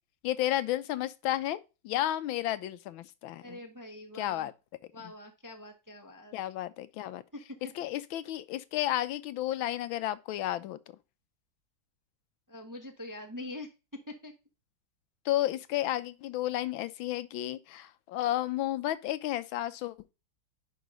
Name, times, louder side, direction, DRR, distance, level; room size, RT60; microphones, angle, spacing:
voice 1, 0.2-1.6 1.8-3.6 4.2-4.5 6.3-7.2 7.8-10.8 15.2-20.0, left 14 dB, 85° left, 1.4 m, -32 dB
voice 2, 3.4-4.5 4.9-6.4 7.3-7.6 12.5-14.3, left 2 dB, 15° right, 0.7 m, -44 dB
10.5 x 3.9 x 5.2 m
omnidirectional pair, 2.2 m